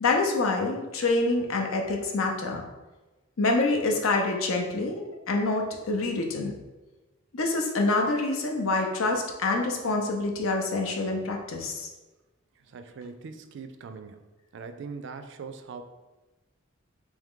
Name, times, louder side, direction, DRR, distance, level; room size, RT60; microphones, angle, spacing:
voice 1, 0.0-2.6 3.4-5.0 5.3-6.5 7.3-11.9, left 3 dB, 90° left, 2 dB, 0.6 m, -26 dB
voice 2, 12.6-14.3 14.5-15.8, right 5 dB, 60° right, 9 dB, 0.3 m, -41 dB
3.5 x 3.1 x 3.7 m, 1.1 s
head